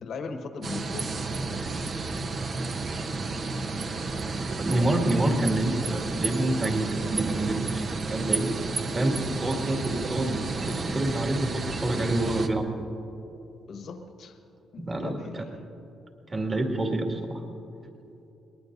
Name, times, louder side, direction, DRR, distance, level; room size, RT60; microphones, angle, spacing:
voice 1, 0.0-1.3 13.7-14.4 14.7-15.4, left 4 dB, 65° left, 6 dB, 1.3 m, -39 dB
sound 1, 0.6-12.5, right 3 dB, 45° right, 1.0 m, -31 dB
voice 2, 4.6-12.8 14.8-15.4 16.3-17.4, right 1 dB, 30° right, 2 dB, 2.2 m, -28 dB
22.5 x 20.0 x 2.7 m, 2.9 s
cardioid pair, 90°, 0 cm